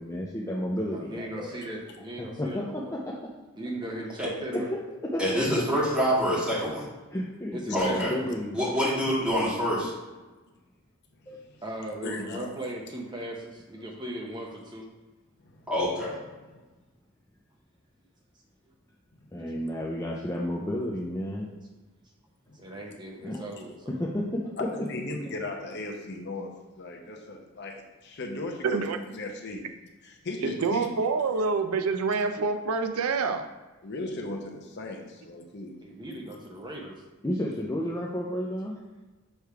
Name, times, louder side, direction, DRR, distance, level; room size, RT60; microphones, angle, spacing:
voice 1, 0.0-1.6 2.2-3.3 4.5-5.2 7.1-8.6 11.3-11.4 19.3-21.5 23.2-23.4 23.9-24.8 26.9-27.0 36.6-36.7 37.2-38.8, left 1 dB, 15° left, -3 dB, 0.5 m, -32 dB
voice 2, 0.8-2.9 3.6-4.7 5.3-5.9 7.5-8.2 11.6-14.9 22.5-24.1 35.8-37.0, right 1 dB, 20° right, 0 dB, 0.7 m, -37 dB
voice 3, 5.2-6.9 7.7-8.1 8.5-9.9 15.7-16.1, equal, 5° right, -8 dB, 1.9 m, -26 dB
voice 4, 7.7-8.1 11.5-11.6 12.0-12.5 15.4-15.7 16.5-16.6 22.5-22.8 24.6-26.5 26.8-28.8 29.1-29.6 30.0-30.9 33.8-35.7 36.3-36.4, left 2 dB, 50° left, 2 dB, 0.8 m, -37 dB
voice 5, 28.6-29.0 30.4-33.5, right 4 dB, 80° right, 8 dB, 0.5 m, -27 dB
6.6 x 3.5 x 4.6 m, 1.2 s
head